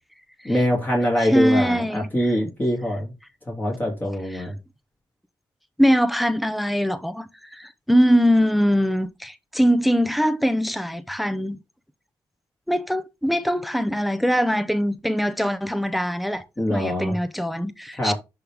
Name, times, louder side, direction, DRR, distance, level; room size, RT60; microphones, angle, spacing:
voice 1, 0.4-3.1 3.5-4.5 16.6-17.1 18.0-18.1, equal, 20° left, 2.7 m, -23 dB
voice 2, 1.2-2.3 4.3-4.5 5.8-11.6 12.7-18.1, equal, ahead, 0.7 m, -22 dB
10.5 x 3.6 x 3.4 m
cardioid pair, 85°, 8 cm